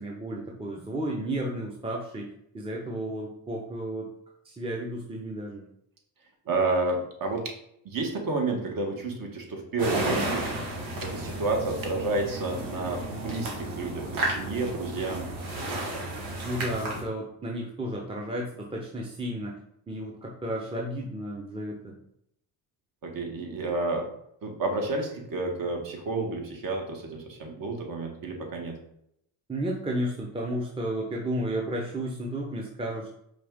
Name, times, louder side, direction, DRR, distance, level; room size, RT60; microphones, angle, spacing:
voice 1, 0.0-2.3 2.5-4.1 4.4-5.6 13.1-13.2 16.4-19.5 19.9-22.0 29.5-33.1, right 1 dB, 10° right, -1 dB, 0.8 m, -33 dB
voice 2, 6.5-7.4 7.8-10.5 11.0-15.3 23.0-24.1 24.4-28.7, right 3 dB, 45° right, 1 dB, 1.4 m, -30 dB
sound 1, 9.8-17.0, right 2 dB, 80° right, 1.6 m, -33 dB
4.9 x 2.5 x 3.6 m, 0.74 s
supercardioid pair, 75°, 45 cm